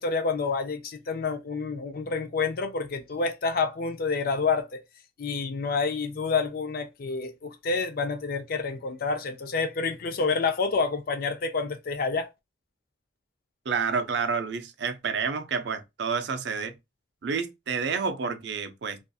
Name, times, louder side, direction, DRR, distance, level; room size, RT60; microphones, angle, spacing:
voice 1, 0.0-4.8 5.2-12.3, left 4 dB, 50° left, 0.4 m, -28 dB
voice 2, 13.7-16.8 17.2-19.1, right 5 dB, 60° right, 0.4 m, -29 dB
2.5 x 2.4 x 2.2 m
head